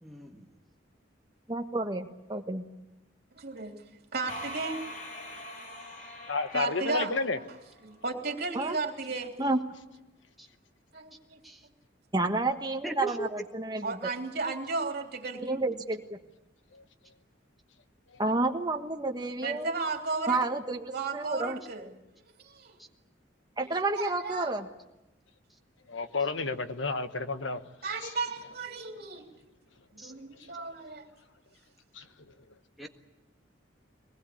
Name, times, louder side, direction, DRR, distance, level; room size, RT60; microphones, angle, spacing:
voice 1, 0.0-0.5 10.4-10.5 11.4-11.6 12.8-13.3 15.4-15.8 30.0-30.1 32.8-32.9, right 2 dB, ahead, 1.6 m, -38 dB
voice 2, 1.5-2.6 8.5-8.8 9.4-9.6 12.1-14.0 15.5-16.2 18.2-19.7 20.3-21.6 23.6-24.7, right 2 dB, 20° right, 1.6 m, -30 dB
voice 3, 3.3-3.8 4.1-4.8 6.5-9.3 10.9-11.4 13.8-15.6 19.4-20.5 20.9-21.9 22.4-22.8 23.6-24.6 27.8-29.2 29.9-31.1, right 3 dB, 55° right, 3.2 m, -35 dB
sound 1, 4.3-7.9, left 1 dB, 40° left, 3.6 m, -43 dB
voice 4, 6.3-7.4 16.7-16.8 25.9-27.6 28.0-28.1 31.9-32.0, left 4 dB, 80° left, 1.2 m, -31 dB
23.0 x 20.0 x 8.7 m
head